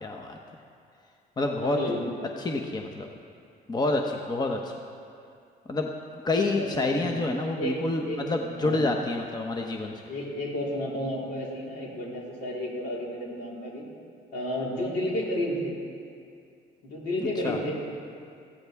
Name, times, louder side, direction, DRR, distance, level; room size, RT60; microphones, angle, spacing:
voice 1, 0.0-0.4 1.4-1.8 2.4-3.1 3.7-4.7 5.7-5.9 6.2-9.9 17.4-17.6, left 2 dB, 25° left, 2 dB, 1.0 m, -28 dB
voice 2, 1.6-2.0 6.4-7.1 7.4-7.8 8.0-8.2 8.6-8.9 10.1-13.9 14.3-15.7 16.8-17.7, left 1 dB, 75° left, -4 dB, 4.0 m, -32 dB
19.5 x 14.5 x 3.5 m, 2.4 s
cardioid pair, 110°, 17 cm